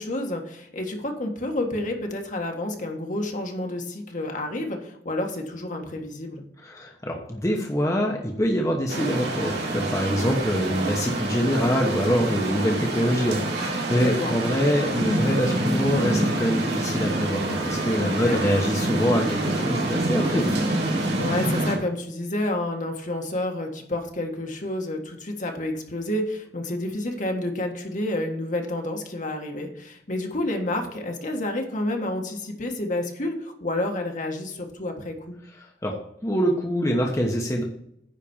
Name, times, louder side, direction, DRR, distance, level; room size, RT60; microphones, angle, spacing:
voice 1, 0.0-6.4 13.9-14.4 18.0-18.4 21.2-35.4, left 1 dB, 45° left, 2 dB, 1.6 m, -29 dB
voice 2, 6.6-20.5 35.6-36.0 36.2-37.6, equal, 20° left, 0 dB, 1.0 m, -25 dB
sound 1, 8.9-21.8, right 1 dB, 70° right, 2.8 m, -26 dB
9.9 x 4.2 x 7.1 m, 0.74 s
head